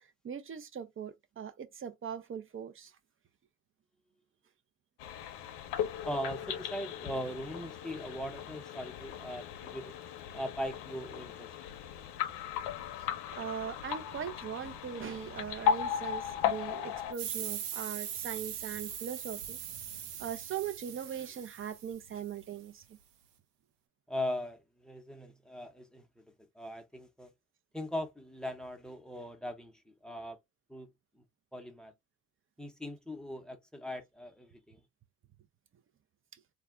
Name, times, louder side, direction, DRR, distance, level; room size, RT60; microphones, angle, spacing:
voice 1, 0.0-2.9 13.3-19.6 19.9-23.0, right 8 dB, 25° right, 0.6 m, -40 dB
sound 1, 5.0-17.1, left 8 dB, 55° left, 0.8 m, -36 dB
voice 2, 6.0-9.9 10.3-11.5 24.1-26.2 26.6-27.3 27.7-30.4 30.7-30.9 31.1-31.2 31.5-31.9 32.6-34.8, equal, ahead, 0.8 m, -40 dB
sound 2, 17.1-22.4, right 9 dB, 80° right, 0.7 m, -41 dB
2.4 x 2.0 x 3.6 m
hypercardioid pair, 65°, 48 cm